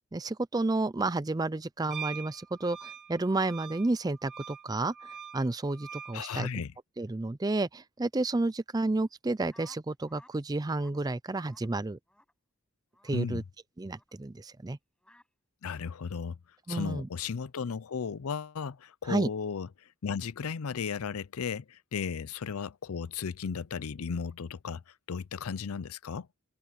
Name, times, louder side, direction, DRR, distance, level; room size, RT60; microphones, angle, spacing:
voice 1, 0.1-4.9 5.3-6.5 7.0-12.0 13.0-13.4 13.8-14.8 16.7-17.1 19.1-19.3, right 2 dB, 15° right, 0.4 m, -31 dB
Wind instrument woodwind instrument, 1.9-6.2, right 7 dB, 50° right, 3.5 m, -44 dB
voice 2, 6.1-6.7 13.1-13.4 15.6-16.4 16.7-19.7 20.0-24.8 25.1-26.3, left 6 dB, 80° left, 0.5 m, -35 dB
sound 1, 9.5-10.4 10.7-11.0 11.4-11.7 12.1-12.3 12.9-13.2 13.9-14.1 15.0-15.3, left 1 dB, 5° left, 7.1 m, -57 dB
open air
head